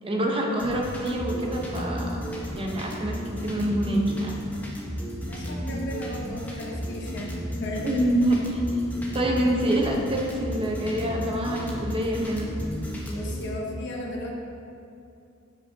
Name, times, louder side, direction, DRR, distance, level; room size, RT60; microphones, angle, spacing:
voice 1, 0.0-2.2 2.5-4.4 7.8-8.6 9.1-12.5, right 1 dB, 25° right, 0 dB, 0.8 m, -26 dB
sound 1, 0.6-13.5, equal, 10° left, 0.9 m, -33 dB
voice 2, 5.3-7.3 7.6-8.0 9.0-9.2 13.1-14.3, left 1 dB, 55° left, -2 dB, 0.8 m, -35 dB
10.5 x 5.2 x 2.8 m, 2.7 s
head